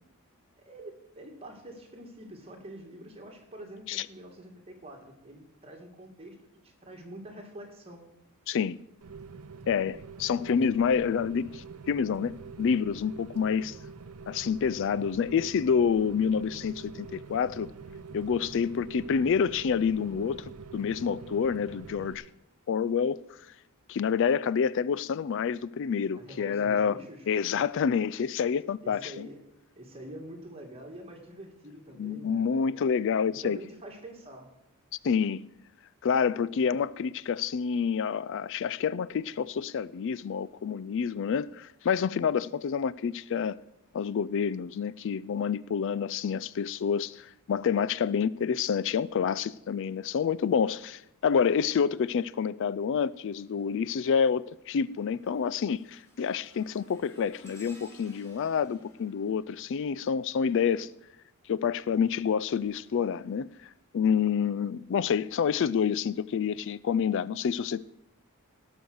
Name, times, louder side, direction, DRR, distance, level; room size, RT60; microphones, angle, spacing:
voice 1, 0.6-8.1 26.2-27.3 28.8-29.4 29.8-33.0 33.4-34.5, right 1 dB, 25° right, 2.3 m, -46 dB
voice 2, 8.5-8.8 9.7-13.8 14.3-17.7 18.1-22.2 22.7-23.2 23.9-27.0 27.3-29.3 32.0-33.6 35.0-35.5 36.0-43.6 43.9-60.9 61.5-67.8, left 6 dB, 60° left, 0.4 m, -28 dB
Rain, 9.0-22.1, right 4 dB, 85° right, 0.7 m, -45 dB
sound 1, 52.9-53.3 53.8-60.6 61.8-64.0 64.7-64.8 65.7-65.8, equal, 15° left, 3.7 m, -59 dB
17.0 x 6.2 x 6.4 m
head